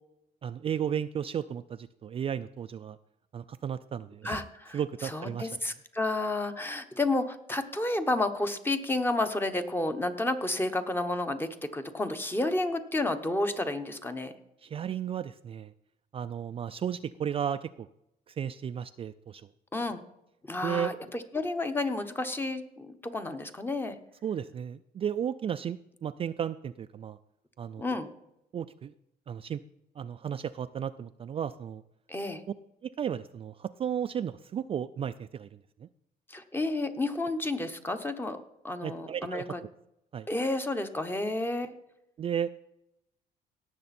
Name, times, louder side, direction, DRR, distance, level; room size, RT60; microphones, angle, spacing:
voice 1, 0.4-3.0 3.3-4.4 4.7-5.5 14.6-15.7 16.1-17.9 18.3-19.5 20.6-20.9 24.2-27.2 27.6-27.9 28.5-28.9 29.3-29.6 30.0-31.8 32.8-35.9 38.8-39.4 40.1-40.3 42.2-42.5, right 8 dB, 35° right, 10 dB, 0.3 m, -34 dB
voice 2, 4.2-14.3 19.7-20.0 20.4-24.0 27.8-28.1 32.1-32.4 36.3-39.6 40.3-41.7, left 2 dB, 10° left, 8 dB, 1.0 m, -31 dB
17.5 x 6.8 x 4.3 m, 0.82 s
cardioid pair, 110°, 17 cm